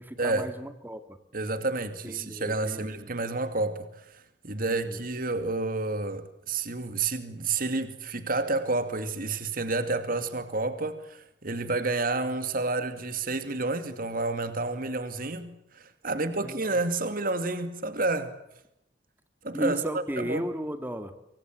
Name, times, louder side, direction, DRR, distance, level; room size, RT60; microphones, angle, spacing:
voice 1, 0.0-1.2 2.0-3.1 4.6-5.0 16.1-16.8 19.5-21.1, equal, 10° right, 2.0 m, -36 dB
voice 2, 1.3-18.3 19.4-20.5, right 3 dB, 50° right, 2.4 m, -30 dB
27.0 x 25.0 x 7.7 m
head